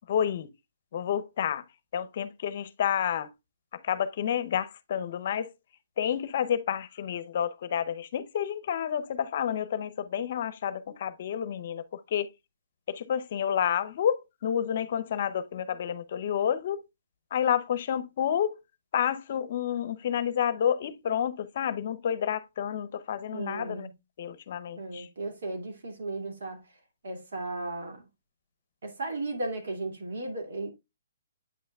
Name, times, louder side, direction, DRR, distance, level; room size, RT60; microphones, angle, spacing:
voice 1, 0.1-0.5 0.9-1.6 1.9-3.3 3.8-5.5 6.0-12.3 12.9-16.8 17.3-18.6 18.9-23.9 24.2-25.1, left 9 dB, 50° left, 0.6 m, -29 dB
voice 2, 23.3-23.9 24.8-26.6 27.0-28.0 28.8-30.7, right 2 dB, 70° right, 2.3 m, -35 dB
8.5 x 5.5 x 2.3 m
hypercardioid pair, 155°, 0 cm